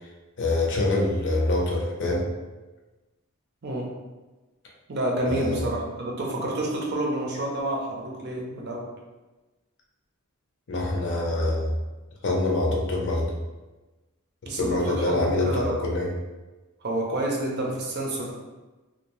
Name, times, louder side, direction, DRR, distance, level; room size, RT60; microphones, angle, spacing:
voice 1, 0.4-2.3 5.2-5.6 10.7-11.7 12.2-13.3 14.5-16.1, left 2 dB, 55° left, -2 dB, 0.6 m, -25 dB
voice 2, 4.9-8.9 14.5-15.9 16.8-18.3, right 1 dB, 50° right, -1 dB, 0.5 m, -29 dB
2.6 x 2.0 x 3.0 m, 1.2 s
head